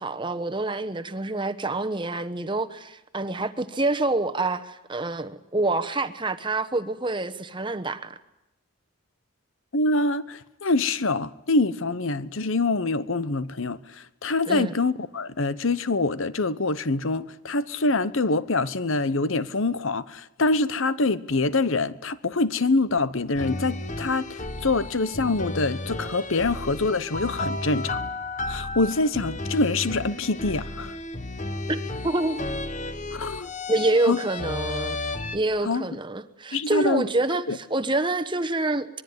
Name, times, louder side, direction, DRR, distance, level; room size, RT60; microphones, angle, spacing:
voice 1, 0.0-8.2 14.5-14.8 31.7-31.8 32.0-32.5 33.7-35.0 35.3-38.9, right 2 dB, 20° right, 1.1 m, -27 dB
voice 2, 9.7-28.0 28.5-31.0 33.1-33.5 34.1-34.2 35.6-35.9 36.5-37.0 37.5-37.6, left 3 dB, 65° left, 1.0 m, -25 dB
sound 1, 23.3-35.4, left 2 dB, 35° left, 1.2 m, -33 dB
25.5 x 22.5 x 9.6 m
head